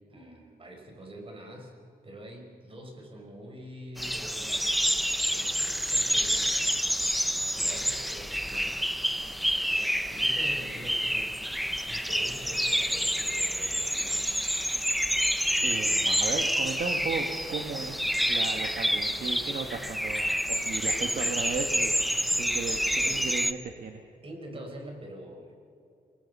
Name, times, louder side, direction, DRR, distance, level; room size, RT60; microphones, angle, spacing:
voice 1, 0.1-1.7 2.0-4.9 5.3-6.5 7.1-7.2 7.5-8.8 9.7-11.3 11.8-14.3 15.8-16.0 20.5-20.7 23.0-23.3 24.2-25.5, right 1 dB, 35° right, 2 dB, 5.3 m, -45 dB
sound 1, 4.0-23.5, equal, ahead, 0.7 m, -28 dB
voice 2, 15.6-21.9 22.4-24.0, right 5 dB, 65° right, 3 dB, 1.6 m, -35 dB
28.0 x 22.5 x 5.5 m, 2.6 s
wide cardioid pair, 110°, 16 cm